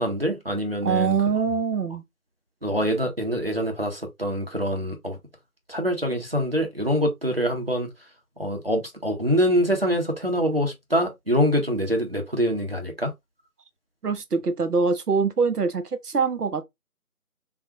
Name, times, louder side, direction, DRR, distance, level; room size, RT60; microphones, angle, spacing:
voice 1, 0.0-1.2 2.6-5.2 5.7-7.9 8.4-13.1, equal, 40° right, 0.8 m, -25 dB
voice 2, 0.8-2.0 14.0-16.6, right 5 dB, 90° right, 0.8 m, -24 dB
3.6 x 2.4 x 2.7 m
figure-of-eight pair, 175°, 45 cm